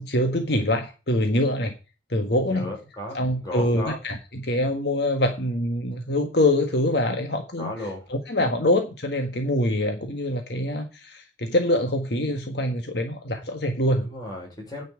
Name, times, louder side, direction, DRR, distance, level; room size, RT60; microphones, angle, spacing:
voice 1, 0.0-1.8 2.1-2.7 3.1-7.7 8.1-14.1, left 1 dB, 55° left, 4 dB, 1.5 m, -24 dB
voice 2, 2.5-4.0 7.6-8.1 14.0-14.8, left 1 dB, 20° left, -1 dB, 5.9 m, -34 dB
10.0 x 5.6 x 8.2 m, 0.31 s
head